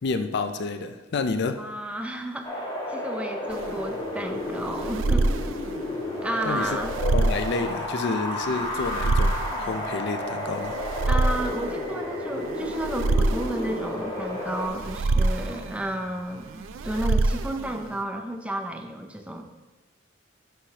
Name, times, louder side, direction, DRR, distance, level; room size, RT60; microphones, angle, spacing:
voice 1, 0.0-1.6 6.5-10.8, left 4 dB, 60° left, 8 dB, 0.4 m, -29 dB
voice 2, 1.6-5.3 6.2-6.9 11.1-19.4, right 1 dB, 5° right, 4 dB, 0.6 m, -32 dB
Wind, 2.4-14.7, left 1 dB, 25° left, 1.7 m, -32 dB
sound 1, 3.5-18.0, right 2 dB, 75° right, 0.4 m, -27 dB
sound 2, 8.4-16.8, right 4 dB, 40° right, 0.8 m, -46 dB
11.5 x 4.8 x 2.9 m, 1.2 s
head